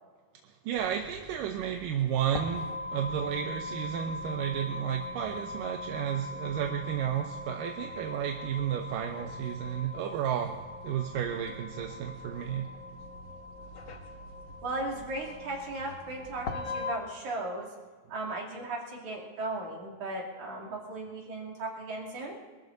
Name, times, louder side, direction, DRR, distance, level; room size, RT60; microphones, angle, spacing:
sound 1, 0.7-17.0, left 2 dB, 80° left, 0.9 m, -41 dB
voice 1, 0.7-10.5 10.8-12.7, right 9 dB, 75° right, 5 dB, 2.4 m, -32 dB
voice 2, 14.6-17.7 18.1-22.4, right 2 dB, 55° right, -1 dB, 4.0 m, -36 dB
22.5 x 13.5 x 4.0 m, 1.5 s
omnidirectional pair, 4.1 m